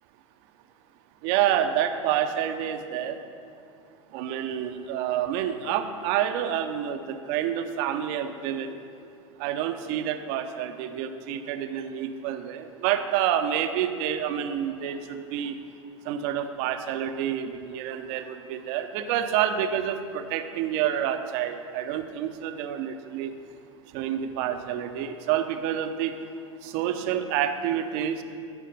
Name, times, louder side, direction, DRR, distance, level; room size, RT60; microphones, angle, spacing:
voice 1, 1.2-3.2 4.1-8.8 9.4-15.6 16.1-23.3 23.9-26.1 26.6-28.2, right 10 dB, 55° right, 8 dB, 0.6 m, -28 dB
10.5 x 4.4 x 5.4 m, 2.5 s
hypercardioid pair, 90°, 16 cm